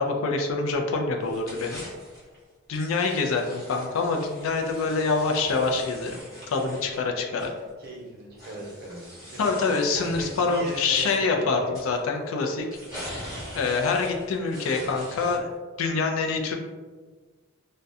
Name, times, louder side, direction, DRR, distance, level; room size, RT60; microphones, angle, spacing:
voice 1, 0.0-1.8 2.7-6.2 6.5-7.5 9.4-12.7 13.5-15.5 15.8-16.6, left 4 dB, 70° left, 3 dB, 0.3 m, -25 dB
sound 1, 1.2-2.4 2.7-7.9 8.3-11.2 11.7-12.0 12.6-15.5, equal, 20° left, 0.9 m, -43 dB
voice 2, 7.2-9.5 9.9-11.8, right 1 dB, 45° right, -4 dB, 0.7 m, -39 dB
2.3 x 2.1 x 2.6 m, 1.4 s
head